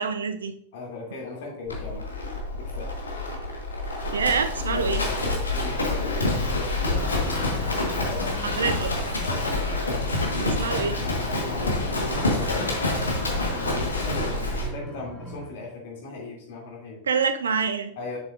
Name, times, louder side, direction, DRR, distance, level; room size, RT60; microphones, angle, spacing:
voice 1, 0.0-0.6 4.1-5.0 8.4-8.9 10.4-11.0 17.1-17.9, right 5 dB, 70° right, 10 dB, 0.6 m, -26 dB
voice 2, 0.7-2.0 2.5-2.9 4.7-7.4 7.9-8.5 9.2-9.5 10.7-13.2 13.6-17.0 18.0-18.2, left 3 dB, 55° left, -2 dB, 2.7 m, -38 dB
Livestock farm animals working animals, 1.7-14.7, left 2 dB, 75° left, 1.4 m, -27 dB
sound 1, 6.9-15.5, right 1 dB, 10° right, 1.5 m, -39 dB
7.6 x 6.9 x 2.5 m, 0.64 s
figure-of-eight pair, 90°, 0 cm